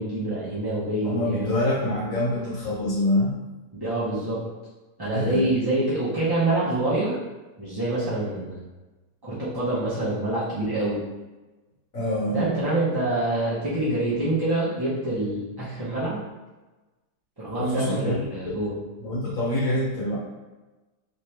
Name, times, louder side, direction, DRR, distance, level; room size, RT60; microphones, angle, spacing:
voice 1, 0.0-1.5 3.7-4.4 5.0-7.2 7.6-8.6 9.2-11.0 12.3-16.2 17.4-18.8, right 2 dB, 35° right, -11 dB, 0.4 m, -26 dB
voice 2, 1.0-3.3 5.0-5.4 11.9-12.5 17.6-18.5 19.0-20.2, left 1 dB, 55° left, -6 dB, 1.5 m, -26 dB
3.3 x 2.8 x 3.2 m, 1.2 s
omnidirectional pair, 1.9 m